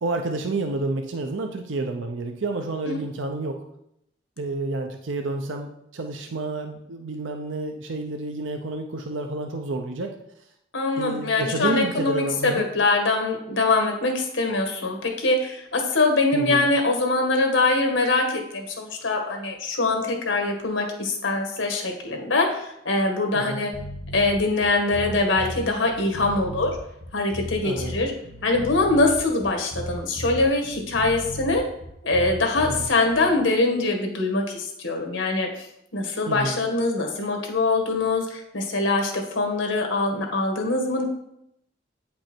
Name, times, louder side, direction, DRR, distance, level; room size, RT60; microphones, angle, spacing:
voice 1, 0.0-3.6 4.4-10.1 11.0-12.6 16.3-16.7 23.3-23.6 27.6-28.0 32.7-32.9 36.3-36.6, right 2 dB, 80° right, 4 dB, 0.7 m, -29 dB
voice 2, 10.7-23.7 24.1-26.8 27.1-28.1 28.4-31.7 32.0-41.0, left 2 dB, 80° left, 2 dB, 1.7 m, -23 dB
sound 1, 23.7-33.3, left 1 dB, 40° right, 1.9 m, -36 dB
8.6 x 5.4 x 4.4 m, 0.78 s
head